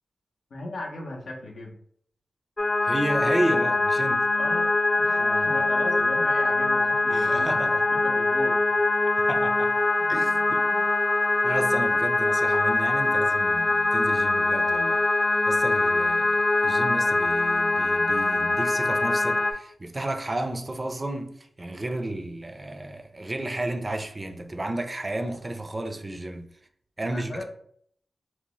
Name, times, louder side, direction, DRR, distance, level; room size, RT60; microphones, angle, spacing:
voice 1, 0.5-1.8 4.4-4.7 5.0-7.8 8.0-8.8 10.0-10.1 10.7-10.8 27.0-27.4, left 2 dB, 80° left, 0.6 m, -37 dB
sound 1, 2.6-19.5, left 2 dB, 35° left, 0.3 m, -23 dB
voice 2, 2.8-4.3 5.2-5.6 7.1-7.8 9.2-9.8 10.1-10.7 11.4-15.0 15.5-21.3 21.6-26.5 27.0-27.4, right 1 dB, 35° right, 0.4 m, -32 dB
2.7 x 2.0 x 2.9 m
cardioid pair, 50°, 0 cm